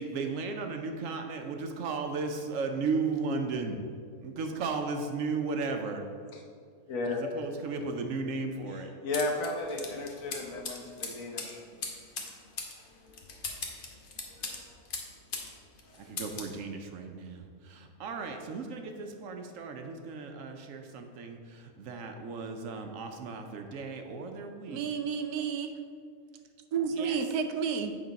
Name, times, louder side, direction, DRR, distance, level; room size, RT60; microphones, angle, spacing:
voice 1, 0.0-3.8 4.2-6.1 7.1-8.9 16.0-24.9 26.9-27.2, right 4 dB, 65° right, 5 dB, 0.9 m, -35 dB
voice 2, 6.9-7.2 9.0-11.6, left 2 dB, 65° left, 1 dB, 1.3 m, -33 dB
sound 1, 9.1-15.5 15.8-16.5, left 4 dB, 45° left, 0.9 m, -39 dB
voice 3, 24.7-25.7 26.7-27.9, right 6 dB, 90° right, 7 dB, 1.1 m, -31 dB
7.9 x 3.8 x 5.1 m, 2.2 s
omnidirectional pair, 1.6 m